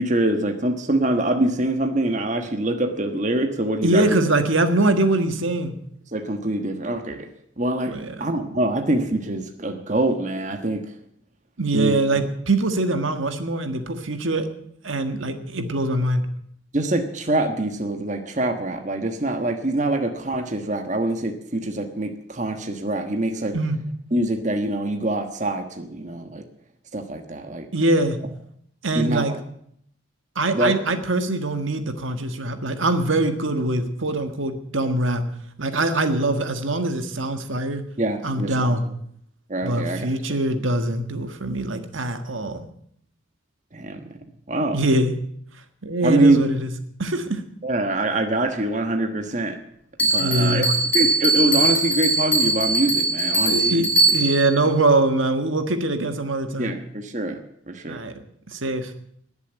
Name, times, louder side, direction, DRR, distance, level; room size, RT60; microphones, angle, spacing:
voice 1, 0.0-4.1 6.1-7.3 7.6-10.8 11.7-12.0 16.7-23.6 24.1-26.4 26.9-27.7 28.9-29.3 30.5-30.8 38.0-38.8 39.5-40.1 43.7-44.0 44.5-44.8 46.0-46.4 47.6-49.6 50.1-53.8 56.6-57.4 57.7-58.0, right 1 dB, 35° right, 6 dB, 1.3 m, -24 dB
voice 2, 3.8-5.7 7.9-8.2 11.6-14.5 14.8-16.2 23.5-23.8 27.7-28.2 28.8-29.3 30.3-35.2 35.6-37.8 38.2-38.8 39.6-42.7 44.7-45.2 45.8-46.7 47.0-47.4 50.2-50.7 53.4-56.8 57.9-58.1 58.5-58.9, right 2 dB, 75° right, 7 dB, 1.6 m, -23 dB
Bell, 50.0-54.5, right 2 dB, 5° left, 3.2 m, -21 dB
20.0 x 7.2 x 9.0 m, 0.69 s
head